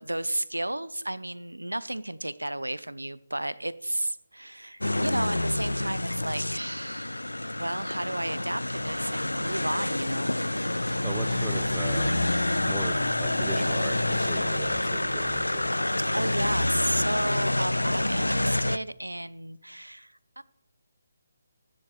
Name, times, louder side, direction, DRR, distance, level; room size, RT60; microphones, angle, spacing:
voice 1, 0.0-7.2 7.6-10.4 16.0-20.4, right 1 dB, 90° right, 18 dB, 0.5 m, -33 dB
sound 1, 4.8-18.8, left 1 dB, 85° left, 0.3 m, -27 dB
voice 2, 11.0-12.3 12.7-15.7, right 5 dB, 10° right, 9 dB, 0.6 m, -40 dB
sound 2, 11.1-15.1, left 7 dB, 40° left, 1.0 m, -41 dB
15.0 x 9.7 x 3.2 m, 0.84 s
figure-of-eight pair, 150°, 0 cm